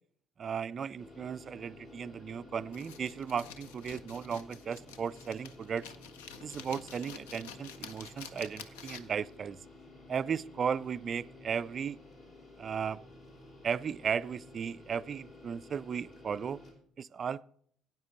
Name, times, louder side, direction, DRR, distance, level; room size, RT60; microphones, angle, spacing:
voice 1, 0.4-5.9 6.4-9.6 10.1-12.0 12.6-13.0 13.6-16.6 17.0-17.5, right 7 dB, 40° right, 17 dB, 0.3 m, -35 dB
sound 1, 1.0-16.7, left 2 dB, 50° left, 3.1 m, -53 dB
sound 2, 2.7-9.3, left 7 dB, 70° left, 0.7 m, -49 dB
17.5 x 9.3 x 3.0 m, 0.64 s
figure-of-eight pair, 50°, 0 cm